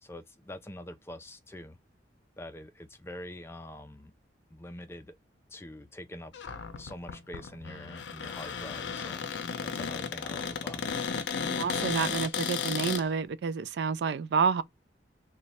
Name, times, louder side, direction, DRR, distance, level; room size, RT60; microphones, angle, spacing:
voice 1, 0.0-1.8 2.4-4.1 4.5-5.2 5.5-6.3 6.8-9.3 9.6-10.9, left 1 dB, 15° left, 0.4 m, -45 dB
Cupboard open or close, 6.3-13.0, left 6 dB, 85° left, 0.5 m, -34 dB
voice 2, 11.5-14.6, right 6 dB, 70° right, 0.3 m, -29 dB
3.0 x 2.2 x 4.1 m
head